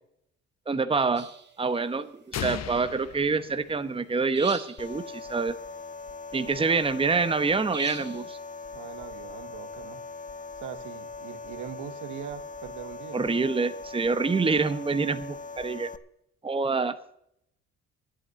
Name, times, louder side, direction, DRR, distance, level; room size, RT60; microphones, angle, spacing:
voice 1, 0.7-1.3 1.6-5.5 6.3-8.4 13.1-15.9 16.4-17.0, right 4 dB, 20° right, 11 dB, 1.0 m, -26 dB
sound 1, 1.1-1.5 4.3-4.9 7.7-8.2, right 5 dB, 35° right, 2.0 m, -39 dB
sound 2, 2.3-4.2, left 9 dB, 60° left, 1.0 m, -37 dB
sound 3, 4.8-16.0, left 4 dB, 25° left, 0.9 m, -41 dB
voice 2, 6.5-6.8 8.7-10.0 10.6-13.3, right 9 dB, 80° right, 10 dB, 1.5 m, -41 dB
11.0 x 9.0 x 8.3 m, 0.73 s
cardioid pair, 90°, 30 cm